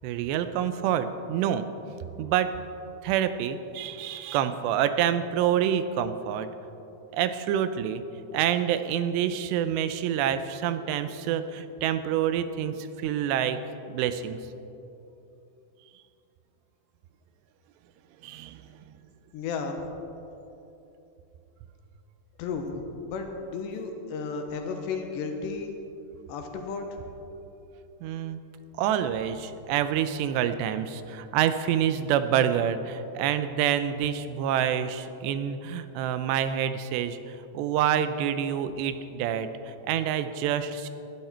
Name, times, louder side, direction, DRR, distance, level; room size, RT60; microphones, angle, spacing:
voice 1, 0.0-1.7 2.2-2.5 3.0-6.5 7.1-8.0 8.3-13.6 13.9-14.4 18.2-18.9 28.0-28.4 28.8-40.9, right 9 dB, 85° right, 11 dB, 2.9 m, -27 dB
voice 2, 19.3-19.9 22.4-25.8 26.3-27.1, left 4 dB, 90° left, 4 dB, 3.5 m, -33 dB
20.0 x 12.5 x 4.5 m, 2.9 s
omnidirectional pair, 4.9 m